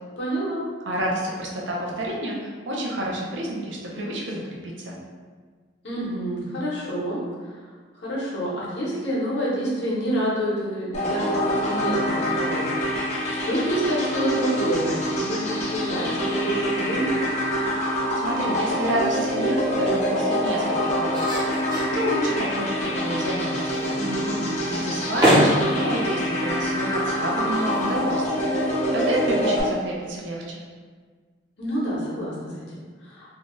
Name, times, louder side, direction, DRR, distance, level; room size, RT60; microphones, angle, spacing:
voice 1, 0.2-0.6 5.8-7.6 7.9-12.7 13.0-17.2 23.9-24.6 31.6-33.3, right 1 dB, 65° left, -7 dB, 0.9 m, -28 dB
voice 2, 0.9-5.0 18.2-24.0 24.7-30.6, right 1 dB, 80° right, -3 dB, 0.6 m, -29 dB
sound 1, 10.9-29.6, equal, 35° left, 0.5 m, -25 dB
sound 2, 18.3-28.7, equal, 20° right, 0.5 m, -29 dB
2.7 x 2.2 x 3.0 m, 1.5 s
head